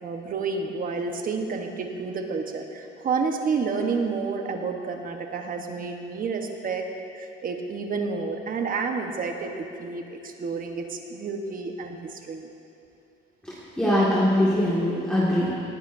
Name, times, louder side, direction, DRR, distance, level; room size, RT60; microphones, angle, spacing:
voice 1, 0.0-6.9 7.1-12.5, right 4 dB, 45° right, 4 dB, 1.2 m, -30 dB
voice 2, 13.4-15.5, left 1 dB, 5° left, -9 dB, 2.1 m, -22 dB
18.5 x 12.0 x 2.7 m, 2.6 s
cardioid pair, 120°, 20 cm